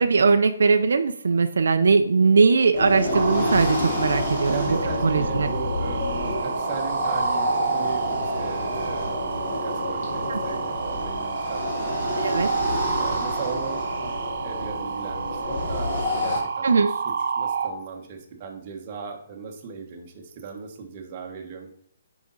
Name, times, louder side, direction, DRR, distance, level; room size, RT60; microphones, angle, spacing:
voice 1, 0.0-4.5 5.0-5.5 10.3-10.4 12.2-12.5 16.6-16.9, right 4 dB, 70° right, 8 dB, 0.6 m, -20 dB
sound 1, 2.7-16.4, left 2 dB, 30° left, 2.1 m, -29 dB
sound 2, 3.1-17.7, right 6 dB, 35° right, 1.2 m, -30 dB
voice 2, 4.5-12.0 12.2-12.5 13.0-14.1 14.4-21.7, right 5 dB, 20° right, 1 dB, 1.2 m, -37 dB
9.6 x 5.1 x 4.0 m, 0.65 s
hypercardioid pair, 175°, 0 cm